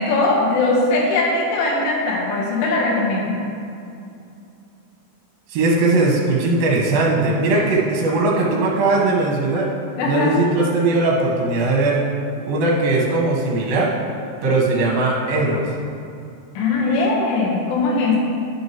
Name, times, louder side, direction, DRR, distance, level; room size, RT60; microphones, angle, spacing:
voice 1, 0.0-3.4 7.5-7.7 10.0-10.3 16.6-18.2, left 2 dB, 85° left, -2 dB, 3.7 m, -20 dB
voice 2, 5.5-9.7 10.0-12.0 12.5-13.9 14.4-15.6, right 2 dB, 65° right, -3 dB, 2.6 m, -19 dB
11.5 x 6.4 x 3.0 m, 2.6 s
omnidirectional pair, 5.5 m